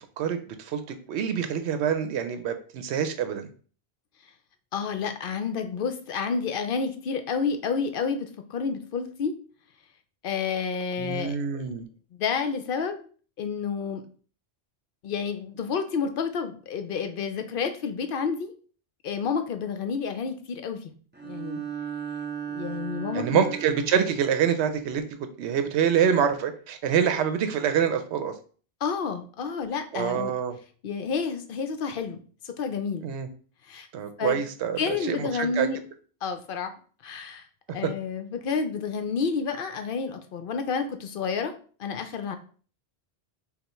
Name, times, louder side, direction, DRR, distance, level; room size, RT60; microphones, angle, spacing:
voice 1, 0.2-3.5 11.0-11.9 23.1-25.0 25.4-28.3 29.9-30.6 33.0-33.3 33.9-35.7 37.8-37.9, right 8 dB, 80° right, 8 dB, 0.9 m, -26 dB
voice 2, 4.7-9.3 10.2-11.7 12.2-13.1 13.4-14.0 15.0-18.5 19.0-20.9 21.2-21.6 22.5-23.5 28.8-30.3 30.8-32.2 32.4-33.1 33.7-33.9 34.2-34.4 34.8-35.8 36.2-36.7 37.0-37.4 37.7-41.5 41.8-42.3, left 5 dB, 60° left, 7 dB, 0.7 m, -30 dB
Bowed string instrument, 21.1-24.3, right 8 dB, 15° right, 0.4 m, -36 dB
5.3 x 2.3 x 3.0 m, 0.42 s
omnidirectional pair, 1.1 m